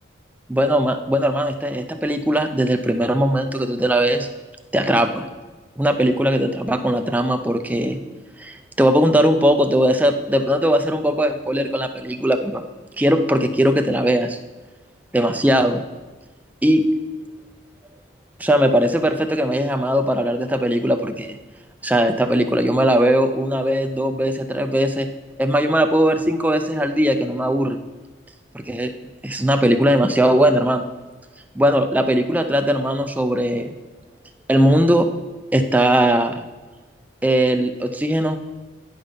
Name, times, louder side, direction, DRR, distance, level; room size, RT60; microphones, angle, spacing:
voice 1, 0.5-4.3 4.7-5.3 5.8-8.0 8.4-12.6 13.0-14.4 15.1-15.8 16.6-16.9 18.4-21.4 21.8-25.1 25.4-27.8 28.5-28.9 29.2-30.9 31.6-33.7 34.5-35.1 35.5-36.4 37.2-38.4, equal, 10° right, 7 dB, 0.5 m, -19 dB
10.0 x 5.2 x 5.5 m, 1.3 s
head